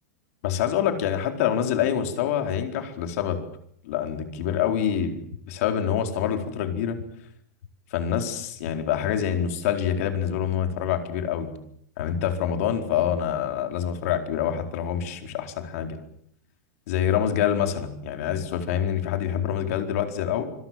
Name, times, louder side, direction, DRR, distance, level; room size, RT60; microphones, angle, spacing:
voice 1, 0.4-3.4 3.8-7.0 7.9-11.5 12.0-16.0 16.9-20.4, left 9 dB, 60° left, 5 dB, 4.4 m, -26 dB
sound 1, 5.3-5.4 5.9-6.0 7.0-7.1 7.6-7.7 8.6-8.7 9.3-9.4 10.3-10.4 10.9-11.0 12.0-12.1 12.6-12.7, left 8 dB, 90° left, 2.2 m, -39 dB
26.0 x 22.5 x 7.5 m, 0.68 s
supercardioid pair, 155°, 9 cm